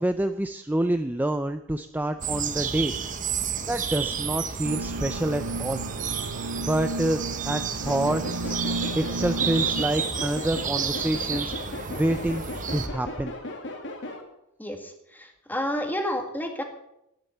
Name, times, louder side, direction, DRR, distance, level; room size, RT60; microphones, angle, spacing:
voice 1, 0.0-2.9 3.7-5.8 6.4-8.6 9.0-11.5 11.9-12.4 12.7-13.3, right 1 dB, 10° right, 8 dB, 0.4 m, -27 dB
sound 1, 2.2-12.9, right 6 dB, 35° right, 1.2 m, -31 dB
sound 2, 4.6-9.8, right 2 dB, 80° right, 0.7 m, -34 dB
sound 3, 7.9-14.2, left 2 dB, 55° left, 2.2 m, -37 dB
voice 2, 14.6-16.6, equal, 10° left, 4 dB, 2.0 m, -30 dB
12.0 x 10.0 x 8.5 m, 0.84 s
head